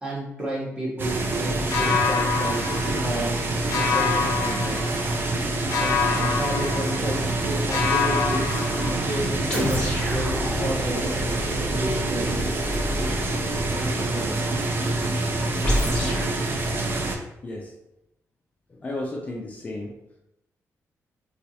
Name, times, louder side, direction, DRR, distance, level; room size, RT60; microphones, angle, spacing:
voice 1, 0.0-2.6 3.0-3.3 3.7-4.8 5.8-8.5 8.9-11.0 11.6-12.5 13.7-14.4, right 1 dB, 15° right, -4 dB, 0.9 m, -31 dB
sound 1, 1.0-17.2, right 2 dB, 40° right, 0.4 m, -26 dB
sound 2, 1.7-3.4 3.7-5.4 5.7-7.4 7.7-9.4, left 6 dB, 75° left, 0.6 m, -27 dB
sound 3, 9.5-13.8 15.6-16.3, left 1 dB, 10° left, 1.1 m, -29 dB
voice 2, 17.4-17.7 18.7-19.9, left 2 dB, 25° left, -2 dB, 0.4 m, -33 dB
4.3 x 2.3 x 2.7 m, 0.87 s
wide cardioid pair, 155°, 5 cm